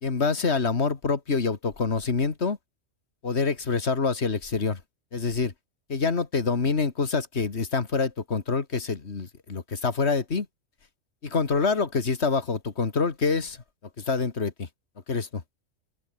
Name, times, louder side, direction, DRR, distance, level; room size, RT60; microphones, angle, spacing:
voice 1, 0.0-2.6 3.2-4.8 5.1-5.5 5.9-10.5 11.2-13.6 14.0-14.7 15.1-15.4, left 4 dB, 60° left, 2.1 m, -26 dB
open air
omnidirectional pair, 1.3 m